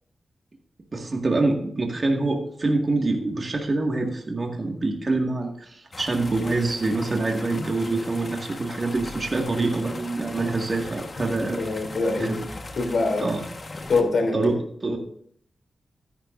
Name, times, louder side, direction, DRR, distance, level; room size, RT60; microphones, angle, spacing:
voice 1, 0.9-11.6 12.2-12.4 13.2-13.4 14.3-15.0, right 2 dB, 40° right, 1 dB, 1.9 m, -25 dB
sound 1, 5.9-14.0, left 2 dB, 40° left, 1.4 m, -38 dB
voice 2, 11.6-13.3 13.9-14.5, left 3 dB, 75° left, 3 dB, 3.2 m, -24 dB
13.5 x 11.0 x 2.6 m, 0.62 s
wide cardioid pair, 90°, 0 cm